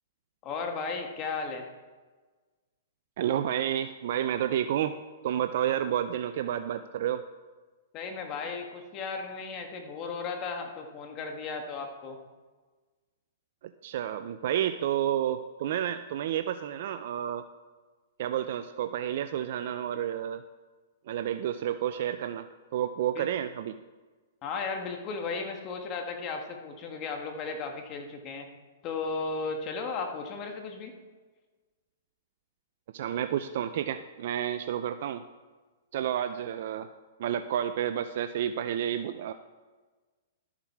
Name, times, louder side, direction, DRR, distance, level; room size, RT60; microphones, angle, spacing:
voice 1, 0.4-1.6 7.9-12.2 23.1-23.3 24.4-28.4 28.8-30.9, left 4 dB, 35° left, 3 dB, 1.7 m, -35 dB
voice 2, 3.2-7.2 13.8-17.4 18.2-20.4 21.1-22.5 22.7-23.8 32.9-35.2 35.9-36.9 37.2-39.3, right 10 dB, 60° right, 10 dB, 0.5 m, -30 dB
12.5 x 7.4 x 4.7 m, 1.3 s
hypercardioid pair, 135°, 0 cm